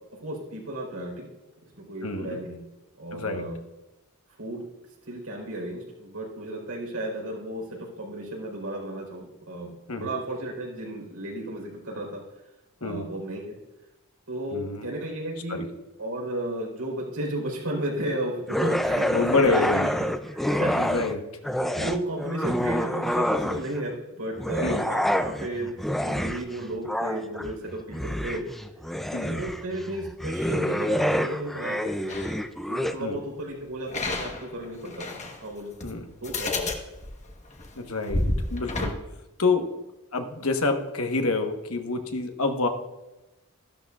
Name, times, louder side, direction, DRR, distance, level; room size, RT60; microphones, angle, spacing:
voice 1, 0.2-1.3 1.8-2.6 3.0-3.6 4.4-4.6 5.1-12.2 12.8-13.5 14.3-15.6 16.0-19.9 20.3-21.0 21.6-28.4 29.3-32.3 32.7-35.8 36.2-36.7, right 1 dB, 75° right, -1 dB, 4.1 m, -33 dB
voice 2, 2.0-2.4 3.1-3.4 9.9-10.1 12.8-13.1 14.5-14.9 15.5-15.7 19.1-19.9 20.8-21.2 24.6-24.9 29.1-29.3 33.0-33.2 35.8-36.1 37.8-39.0 39.4-39.8 40.1-42.7, left 3 dB, 70° left, 5 dB, 1.1 m, -27 dB
sound 1, 18.5-21.2 21.4-23.8 24.3-33.0, equal, ahead, 0.3 m, -27 dB
sound 2, 32.1-32.4 33.9-35.4 35.8-35.9 36.2-38.9, left 2 dB, 30° left, 1.2 m, -30 dB
14.0 x 12.0 x 2.4 m, 1.0 s
head